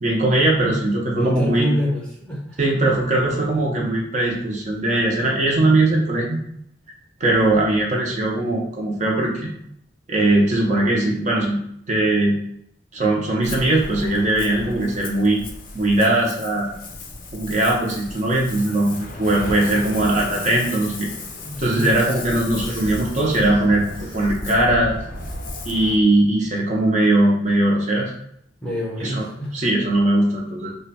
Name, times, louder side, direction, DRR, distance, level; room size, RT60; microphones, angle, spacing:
voice 1, 0.0-1.7 2.6-6.4 7.2-9.5 10.1-11.6 11.9-12.4 12.9-15.4 15.7-16.7 17.3-21.1 21.6-23.9 24.1-24.9 25.6-28.1 29.0-29.2 29.5-30.7, right 1 dB, 40° right, -2 dB, 0.6 m, -20 dB
voice 2, 1.1-2.6 21.4-22.0 28.6-29.6, equal, 5° left, -4 dB, 0.7 m, -26 dB
Ocean, 13.4-26.0, left 2 dB, 45° left, 0.5 m, -35 dB
sound 1, 22.5-26.0, equal, 90° right, 1.3 m, -36 dB
3.1 x 2.2 x 4.1 m, 0.72 s
head